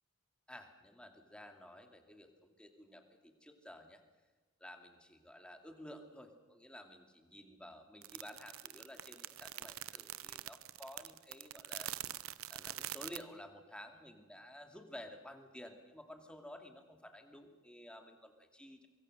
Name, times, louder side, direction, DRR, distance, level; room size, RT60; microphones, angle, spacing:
voice 1, 0.5-4.0 4.6-12.0 12.5-18.9, left 1 dB, 5° left, 5 dB, 2.5 m, -53 dB
sound 1, 8.0-13.2, right 13 dB, 80° right, 0.8 m, -44 dB
24.5 x 23.0 x 6.7 m, 1.3 s
head